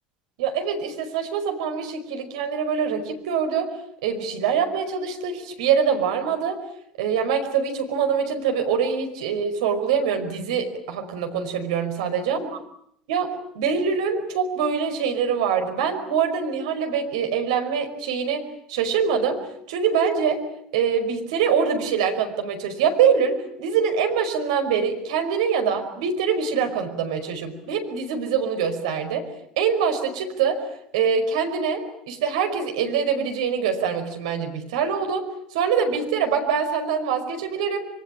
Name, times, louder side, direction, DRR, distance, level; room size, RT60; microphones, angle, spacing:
voice 1, 0.4-3.7 4.0-6.6 7.0-12.5 13.1-18.4 18.7-19.4 19.7-20.4 20.7-29.2 29.6-30.6 30.9-37.9, right 6 dB, 70° right, 6 dB, 5.2 m, -24 dB
26.5 x 24.0 x 8.8 m, 0.71 s
figure-of-eight pair, 70°, 4 cm